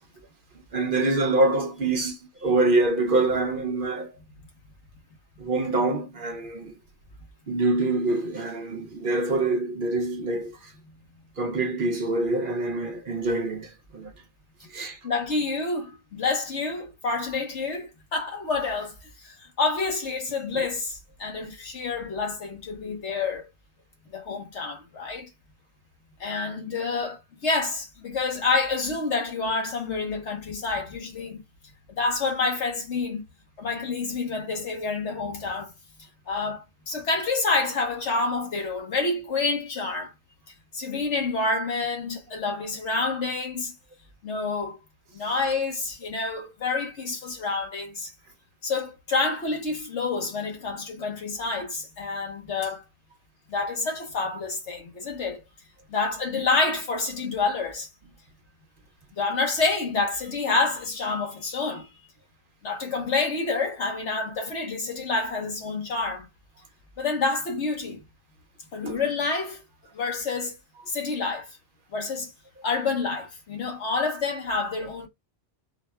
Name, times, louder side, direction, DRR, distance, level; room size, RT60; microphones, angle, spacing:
voice 1, 0.7-4.1 5.4-6.7 7.5-10.7 11.4-14.1 14.7-15.0, right 2 dB, 55° right, 0.8 m, -25 dB
voice 2, 15.0-18.9 19.2-23.5 24.1-25.3 26.2-31.4 31.9-33.2 33.6-35.7 36.3-40.1 40.7-43.7 44.2-44.8 45.1-48.1 48.6-52.8 53.5-55.4 55.9-57.9 59.1-61.9 62.6-66.3 67.0-68.0 68.7-69.6 69.9-70.5 70.9-71.5 71.9-72.3 72.6-75.1, left 3 dB, 75° left, 1.5 m, -28 dB
4.8 x 3.2 x 2.3 m
omnidirectional pair, 1.2 m